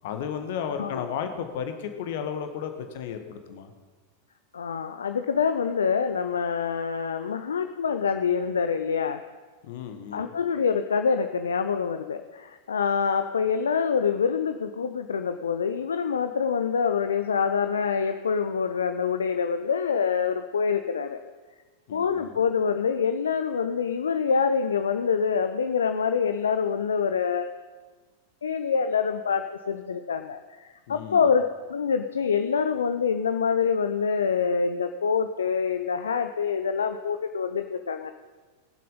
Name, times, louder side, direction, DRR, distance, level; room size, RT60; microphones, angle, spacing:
voice 1, 0.0-3.7 9.6-10.3 21.9-22.3 30.9-31.3, left 7 dB, 55° left, 7 dB, 1.5 m, -34 dB
voice 2, 4.5-9.2 10.1-21.2 21.9-27.5 28.4-38.1, left 6 dB, 70° left, 8 dB, 0.6 m, -26 dB
20.5 x 7.6 x 5.5 m, 1.4 s
figure-of-eight pair, 90°, 0 cm